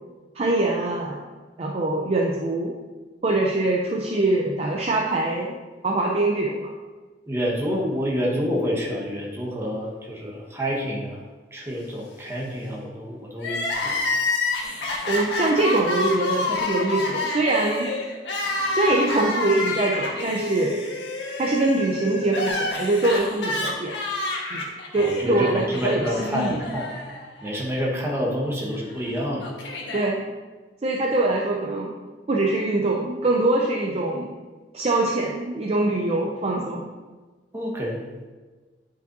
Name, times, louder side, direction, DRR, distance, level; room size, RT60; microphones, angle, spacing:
voice 1, 0.4-1.2 1.6-2.8 3.2-5.6 5.8-6.7 15.1-17.9 18.7-20.8 21.4-23.9 24.5-24.6 24.9-26.6 29.9-30.3 30.8-31.9 32.3-34.3 34.7-36.9, right 2 dB, 35° right, -1 dB, 0.5 m, -23 dB
voice 2, 7.3-11.2 11.5-14.0 25.0-26.9 27.4-29.4 37.5-38.0, equal, 15° right, -2 dB, 1.2 m, -28 dB
Crying sobbing, 13.4-27.5 27.8-27.9 28.9-30.0, left 2 dB, 90° left, 1.2 m, -28 dB
9.2 x 5.4 x 2.6 m, 1.3 s
head